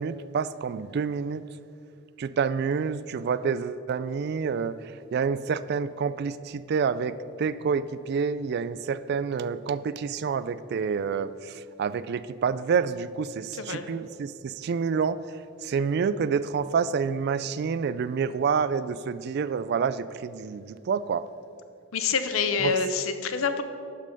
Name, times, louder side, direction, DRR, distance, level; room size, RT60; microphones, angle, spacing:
voice 1, 0.0-1.4 2.2-4.7 5.1-11.5 11.8-15.2 15.6-21.2 22.6-22.7, right 6 dB, 50° right, 15 dB, 0.3 m, -28 dB
voice 2, 13.5-13.9 21.9-23.6, left 5 dB, 80° left, 9 dB, 0.7 m, -27 dB
11.5 x 5.5 x 5.2 m, 2.5 s
head